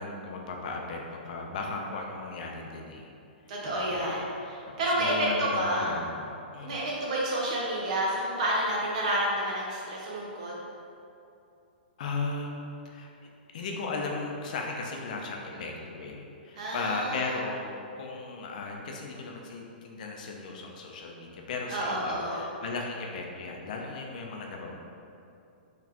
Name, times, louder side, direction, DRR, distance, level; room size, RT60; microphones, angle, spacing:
voice 1, 0.0-3.1 3.7-4.1 4.8-6.7 12.0-13.1 13.5-24.7, left 3 dB, 50° left, 0 dB, 0.5 m, -36 dB
voice 2, 3.5-5.1 5.4-5.9 6.6-10.5 16.5-17.4 21.7-22.5, right 1 dB, 40° right, -4 dB, 0.6 m, -30 dB
4.0 x 3.1 x 2.9 m, 2.6 s
hypercardioid pair, 165°, 6 cm